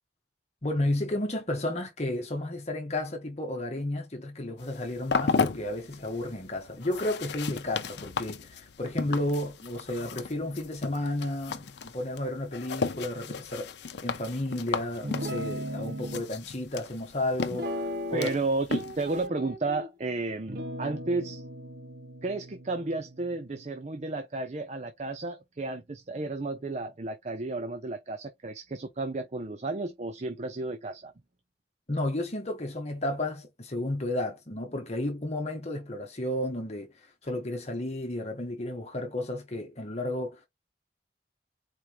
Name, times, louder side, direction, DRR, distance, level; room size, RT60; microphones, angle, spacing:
voice 1, 0.6-13.7 14.0-18.3 31.9-40.5, left 1 dB, 40° left, 1.1 m, -32 dB
sound 1, 4.6-19.3, left 5 dB, 75° left, 0.6 m, -35 dB
Guitar, 15.0-16.2 17.5-18.4 18.7-19.9 20.5-24.0, equal, 60° right, 1.2 m, -37 dB
voice 2, 18.1-21.4 22.2-31.1, right 3 dB, 40° right, 0.6 m, -32 dB
4.6 x 3.4 x 3.0 m
head